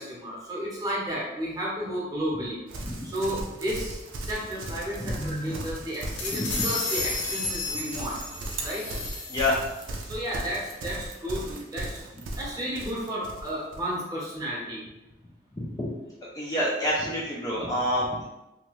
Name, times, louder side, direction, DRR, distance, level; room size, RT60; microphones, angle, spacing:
voice 1, 0.0-2.6 3.0-8.1 8.6-8.8 10.1-12.0 12.4-14.8, equal, 20° right, -6 dB, 0.7 m, -32 dB
Livestock farm animals working animals, 2.7-13.9, right 2 dB, 80° right, 0.5 m, -37 dB
voice 2, 2.8-3.1 5.0-5.1 9.3-9.6 15.5-15.9 16.3-18.2, left 1 dB, 20° left, -6 dB, 0.4 m, -27 dB
sound 1, 5.9-9.9, left 3 dB, 75° left, 0.6 m, -32 dB
2.8 x 2.2 x 2.9 m, 0.97 s
head